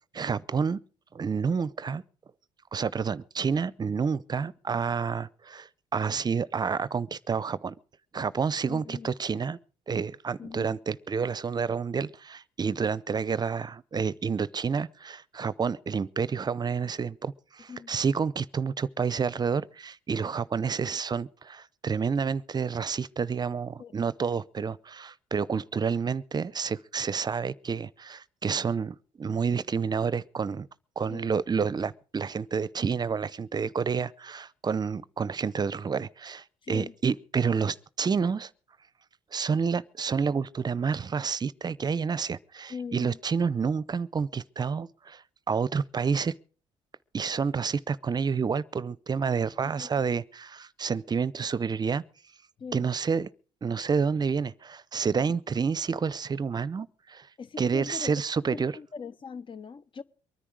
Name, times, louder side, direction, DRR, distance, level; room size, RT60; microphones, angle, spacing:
voice 1, 0.1-0.8 1.1-2.0 2.7-7.7 8.1-9.6 9.9-30.7 31.0-38.5 39.3-46.3 47.1-52.0 52.7-53.3 53.6-57.3 57.6-58.8, right 5 dB, 35° right, 0.7 m, -29 dB
voice 2, 8.7-9.1 10.4-10.7 17.7-17.9 23.8-23.9 31.1-31.3 36.6-36.9 42.7-43.2 49.8-50.1 52.6-52.9 57.4-58.1 58.5-60.0, left 5 dB, 40° left, 1.1 m, -41 dB
23.5 x 10.0 x 4.8 m
supercardioid pair, 70°, 12 cm